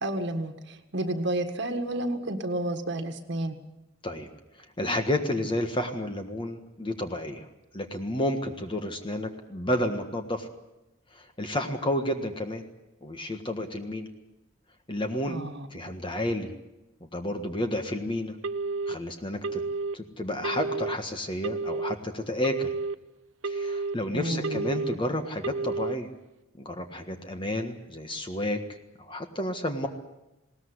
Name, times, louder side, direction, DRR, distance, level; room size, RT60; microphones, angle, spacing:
voice 1, 0.0-3.6 15.3-15.7 24.1-24.6, right 1 dB, 60° right, 7 dB, 1.8 m, -31 dB
voice 2, 4.8-7.5 7.7-10.5 11.1-12.6 13.0-14.1 14.9-15.4 15.7-16.5 17.0-18.4 18.9-19.6 19.9-22.7 23.4-26.1 26.6-28.6 29.0-29.9, left 1 dB, 25° left, 6 dB, 1.6 m, -31 dB
Telephone, 18.4-18.9 19.4-19.9 20.4-20.9 21.4-21.9 22.4-22.9 23.4-23.9 24.4-24.9 25.4-25.9, right 3 dB, 75° right, 0.8 m, -30 dB
20.5 x 18.5 x 9.8 m, 0.93 s
head